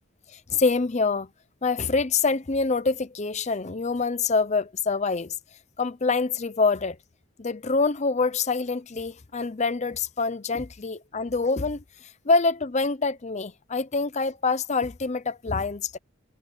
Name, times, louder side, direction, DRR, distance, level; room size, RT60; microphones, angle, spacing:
voice 1, 0.3-1.3 1.6-5.3 5.8-7.0 7.4-16.0, left 4 dB, 35° left, 0.6 m, -26 dB
head